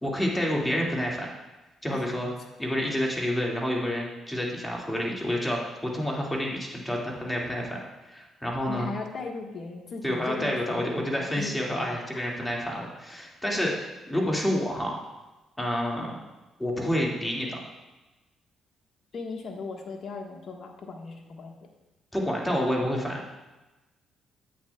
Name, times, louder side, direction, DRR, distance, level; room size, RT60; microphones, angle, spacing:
voice 1, 0.0-1.3 1.8-2.3 2.6-7.8 8.1-8.9 10.0-15.0 15.6-16.2 16.6-17.6 22.1-23.2, equal, 15° left, -2 dB, 2.0 m, -29 dB
voice 2, 8.7-11.9 19.1-21.5, left 4 dB, 55° left, 2 dB, 1.3 m, -37 dB
10.0 x 8.5 x 2.3 m, 1.1 s
supercardioid pair, 65°, 0 cm